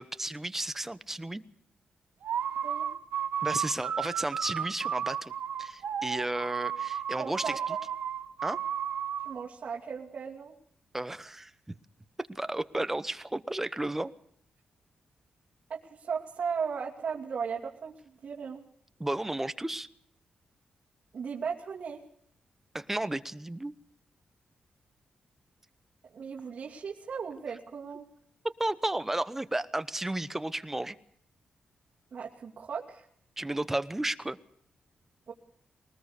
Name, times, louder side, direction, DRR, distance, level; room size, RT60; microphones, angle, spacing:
voice 1, 0.0-1.4 3.4-5.3 5.6-7.8 8.4-8.6 10.9-11.5 12.2-14.1 19.0-19.9 22.7-23.8 28.4-31.0 33.4-34.4, right 1 dB, 10° right, 14 dB, 0.9 m, -33 dB
sound 1, 2.2-9.4, right 9 dB, 90° right, 1.6 m, -33 dB
voice 2, 7.2-7.6 9.2-10.5 15.7-18.6 21.1-22.0 26.1-28.1 32.1-33.1 35.3-35.4, right 6 dB, 50° right, -3 dB, 2.7 m, -36 dB
22.5 x 19.5 x 6.7 m, 0.66 s
wide cardioid pair, 125°, 3 cm